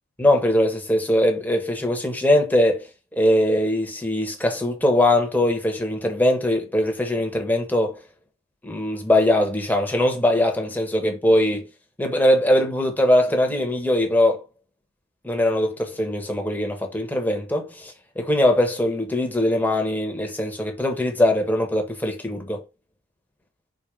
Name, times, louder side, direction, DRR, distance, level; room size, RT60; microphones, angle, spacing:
voice 1, 0.2-8.0 8.6-11.7 12.0-14.4 15.2-22.6, left 1 dB, 10° left, 1.4 m, -21 dB
5.2 x 4.1 x 5.5 m
head